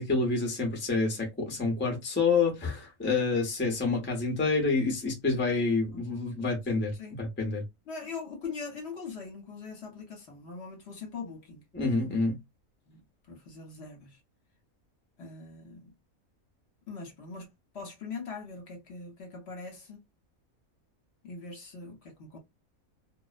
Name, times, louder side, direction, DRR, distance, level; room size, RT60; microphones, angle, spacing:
voice 1, 0.0-7.6 11.7-12.4, left 3 dB, 10° left, 0.6 m, -28 dB
voice 2, 7.9-11.6 12.9-13.0 13.3-14.2 15.2-15.9 16.9-17.5 17.7-20.0 21.2-22.4, left 4 dB, 55° left, 1.0 m, -41 dB
2.5 x 2.0 x 2.4 m
omnidirectional pair, 1.5 m